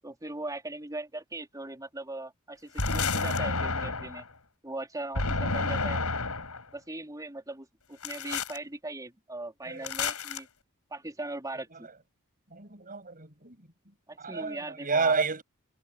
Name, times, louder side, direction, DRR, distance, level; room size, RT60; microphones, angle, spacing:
voice 1, 0.0-4.2 4.6-6.0 6.7-10.5 10.9-11.9 14.1-15.1, right 2 dB, 15° right, 4.2 m, -39 dB
sound 1, 2.8-4.2 5.1-6.6 8.0-8.6 9.8-10.4, left 3 dB, 75° left, 7.0 m, -30 dB
voice 2, 12.5-13.6 14.2-15.4, right 4 dB, 40° right, 7.8 m, -30 dB
head